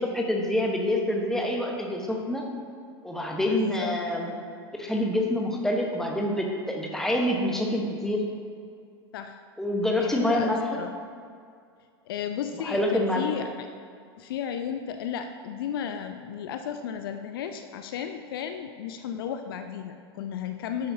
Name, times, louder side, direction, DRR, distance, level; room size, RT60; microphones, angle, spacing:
voice 1, 0.0-2.4 3.0-4.3 4.7-8.2 9.6-10.6 12.6-13.2, left 1 dB, 5° left, 0 dB, 1.2 m, -26 dB
voice 2, 3.4-4.0 9.1-9.4 10.0-10.9 12.1-13.7 14.2-20.9, left 8 dB, 55° left, 7 dB, 0.5 m, -33 dB
11.5 x 7.3 x 2.8 m, 2.2 s
figure-of-eight pair, 85°, 14 cm